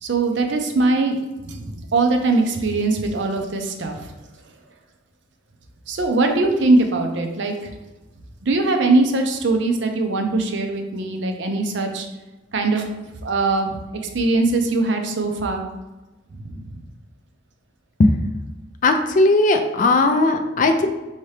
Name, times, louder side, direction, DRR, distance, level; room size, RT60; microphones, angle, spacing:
voice 1, 0.0-4.0 5.9-7.7 8.4-12.1 12.5-12.9 13.2-15.6 16.3-16.8, right 2 dB, 60° right, 4 dB, 0.5 m, -21 dB
voice 2, 18.8-20.9, left 2 dB, 40° left, 6 dB, 0.3 m, -17 dB
4.6 x 2.8 x 3.2 m, 1.1 s
head